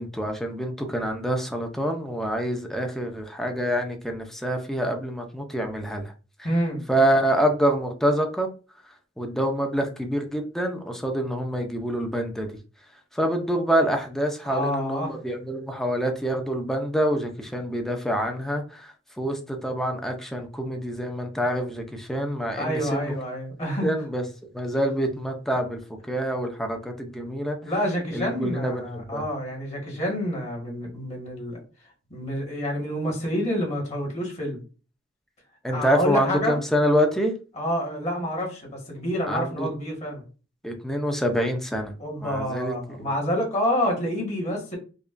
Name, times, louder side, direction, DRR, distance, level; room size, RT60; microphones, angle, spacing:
voice 1, 0.0-6.1 6.9-8.5 9.2-12.5 13.1-23.1 23.8-24.2 24.5-25.8 26.1-27.6 28.1-29.2 35.6-37.3 39.3-39.7 40.6-41.9 42.2-43.1, equal, ahead, 0.6 m, -26 dB
voice 2, 6.4-6.8 14.5-15.1 22.6-23.9 27.6-31.6 32.1-34.6 35.7-36.6 37.6-40.2 42.0-44.8, equal, 35° left, 1.6 m, -28 dB
5.1 x 2.3 x 2.5 m
head